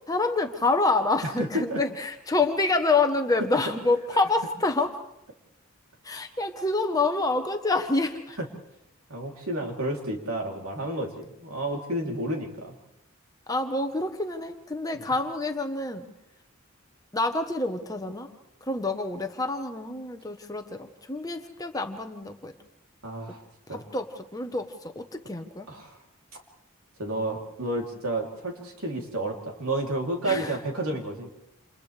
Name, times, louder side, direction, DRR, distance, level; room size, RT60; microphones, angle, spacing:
voice 1, 0.0-5.0 6.0-8.4 13.5-16.1 17.1-18.3 18.6-22.5 23.7-25.7 30.2-30.5, left 3 dB, 15° left, 5 dB, 1.1 m, -27 dB
voice 2, 1.4-1.8 8.4-8.5 9.1-12.7 15.0-15.1 23.0-23.4 23.7-23.8 25.7-26.0 27.0-31.3, right 1 dB, 75° right, 0 dB, 3.2 m, -31 dB
29.0 x 28.5 x 3.4 m, 0.85 s
head